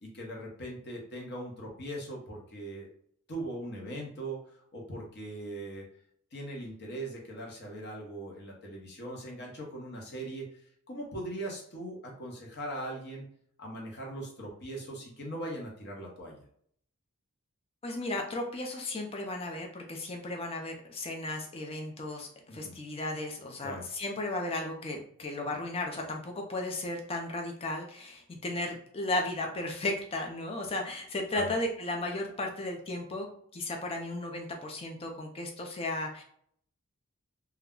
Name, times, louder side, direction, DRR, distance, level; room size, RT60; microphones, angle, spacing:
voice 1, 0.0-2.9 3.3-5.9 6.3-10.5 10.9-13.2 13.6-16.4 22.5-22.8 23.6-23.9 31.3-31.5, right 1 dB, 50° left, -1 dB, 0.8 m, -40 dB
voice 2, 17.8-33.3 33.5-36.2, left 2 dB, 25° left, 2 dB, 0.4 m, -35 dB
2.3 x 2.1 x 3.5 m, 0.63 s
head